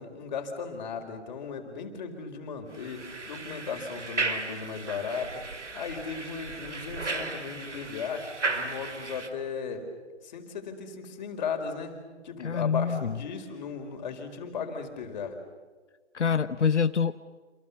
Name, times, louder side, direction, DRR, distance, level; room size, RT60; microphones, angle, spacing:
voice 1, 0.0-9.9 10.2-12.0 12.2-15.4, left 5 dB, 40° left, 5 dB, 4.3 m, -36 dB
sound 1, 2.7-9.3, right 3 dB, 80° right, 3.3 m, -35 dB
voice 2, 12.4-13.2 16.1-17.1, left 6 dB, 75° left, 12 dB, 1.0 m, -26 dB
28.5 x 27.5 x 7.0 m, 1.3 s
figure-of-eight pair, 150°, 35 cm